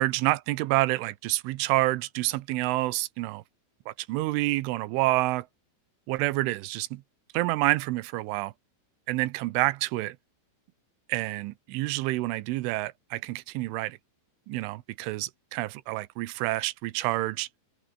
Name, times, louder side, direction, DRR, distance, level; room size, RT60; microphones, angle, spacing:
voice 1, 0.0-3.4 3.9-5.5 6.1-7.0 7.3-8.5 9.1-10.2 11.1-14.0 14.5-17.5, right 19 dB, 90° right, 3.4 m, -28 dB
omnidirectional pair, 5.5 m